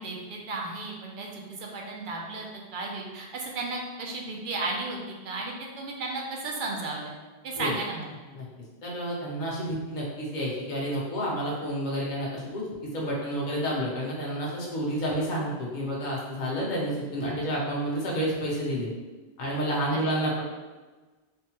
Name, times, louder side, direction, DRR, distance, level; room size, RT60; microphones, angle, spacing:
voice 1, 0.0-7.1 7.4-8.2 19.9-20.2, right 2 dB, 60° right, -1 dB, 0.6 m, -34 dB
voice 2, 8.8-12.6 12.9-18.9 19.4-20.4, equal, 50° left, -4 dB, 0.8 m, -30 dB
3.4 x 2.1 x 2.9 m, 1.3 s
omnidirectional pair, 1.1 m